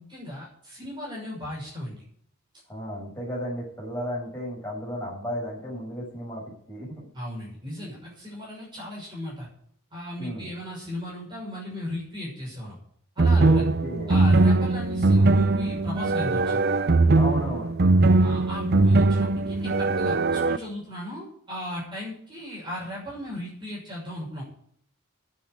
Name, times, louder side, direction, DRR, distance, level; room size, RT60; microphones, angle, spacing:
voice 1, 0.0-2.0 7.1-9.5 9.9-12.8 13.1-13.6 14.1-16.7 18.2-24.4, left 1 dB, 20° right, -5 dB, 6.4 m, -36 dB
voice 2, 2.7-7.1 10.2-10.5 13.4-14.1 17.1-17.7, equal, 10° left, -6 dB, 7.6 m, -34 dB
sound 1, 13.2-20.6, right 2 dB, 50° right, 0.6 m, -20 dB
10.0 x 7.4 x 9.4 m, 0.62 s
head